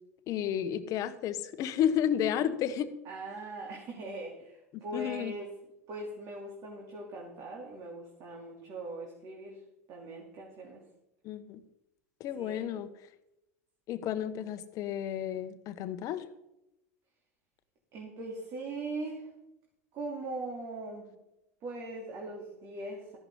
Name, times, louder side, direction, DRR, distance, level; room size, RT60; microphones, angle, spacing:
voice 1, 0.3-2.9 4.7-5.3 11.2-11.6 12.2-12.9 13.9-16.2, left 9 dB, 45° left, 12 dB, 1.1 m, -32 dB
voice 2, 3.0-5.5 5.9-9.6 9.9-10.8 12.4-12.9 17.9-19.3 19.9-21.1 21.6-23.2, right 2 dB, 45° right, -1 dB, 2.9 m, -40 dB
14.5 x 11.0 x 3.8 m, 0.88 s
figure-of-eight pair, 80°, 8 cm